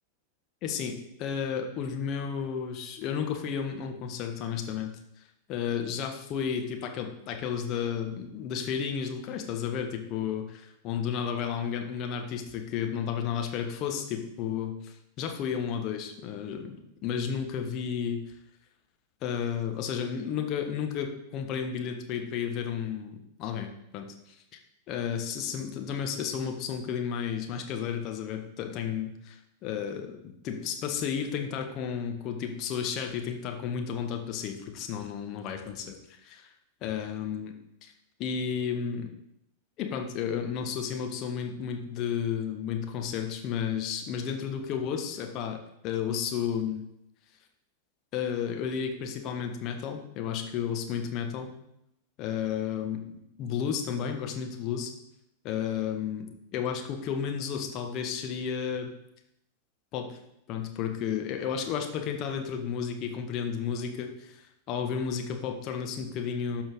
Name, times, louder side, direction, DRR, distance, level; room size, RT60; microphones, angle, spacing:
voice 1, 0.6-4.9 5.5-18.2 19.2-24.4 24.9-36.0 36.2-36.5 36.8-37.5 37.8-37.9 38.2-39.1 39.8-45.6 45.8-46.9 48.1-51.5 52.2-53.0 53.4-54.9 55.4-58.9 59.9-60.2 60.5-66.6, left 7 dB, 40° left, 4 dB, 1.3 m, -32 dB
12.0 x 5.2 x 3.7 m, 0.81 s
figure-of-eight pair, 90°, 0 cm